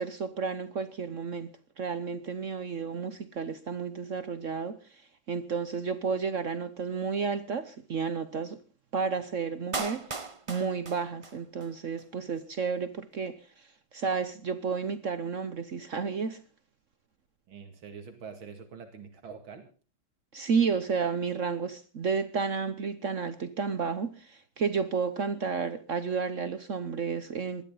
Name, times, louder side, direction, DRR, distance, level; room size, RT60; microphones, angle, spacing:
voice 1, 0.0-1.5 1.8-5.0 5.3-8.6 8.9-10.1 10.5-16.4 20.3-27.6, right 5 dB, 50° right, 1.0 m, -31 dB
Clapping, 9.7-11.7 12.0-12.1, right 4 dB, 35° right, 0.5 m, -37 dB
voice 2, 17.5-19.7, right 6 dB, 80° right, 3.0 m, -45 dB
20.5 x 13.5 x 3.8 m
omnidirectional pair, 2.2 m